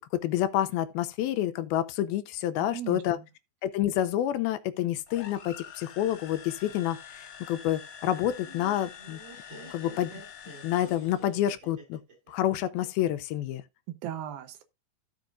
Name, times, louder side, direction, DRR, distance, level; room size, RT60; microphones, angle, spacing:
voice 1, 0.2-3.2 3.6-9.2 9.7-10.2 10.6-12.0 12.3-13.6, left 12 dB, 85° left, 2.5 m, -28 dB
voice 2, 2.7-3.3 13.9-14.6, right 11 dB, 75° right, 2.7 m, -37 dB
sound 1, 5.1-11.4, left 8 dB, 55° left, 1.9 m, -47 dB
Laughter, 8.2-13.2, right 1 dB, 35° right, 3.3 m, -50 dB
15.5 x 5.3 x 2.5 m
omnidirectional pair, 4.4 m